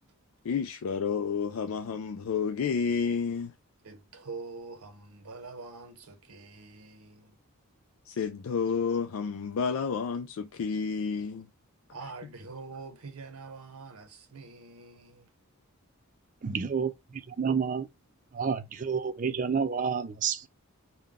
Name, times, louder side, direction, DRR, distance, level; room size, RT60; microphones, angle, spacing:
voice 1, 0.4-3.5 8.1-11.5, left 6 dB, 75° left, 0.4 m, -30 dB
voice 2, 3.8-7.4 11.9-15.3, right 4 dB, 85° right, 0.8 m, -45 dB
voice 3, 16.4-17.9 18.3-20.5, right 6 dB, 35° right, 0.3 m, -30 dB
3.8 x 2.2 x 3.4 m
head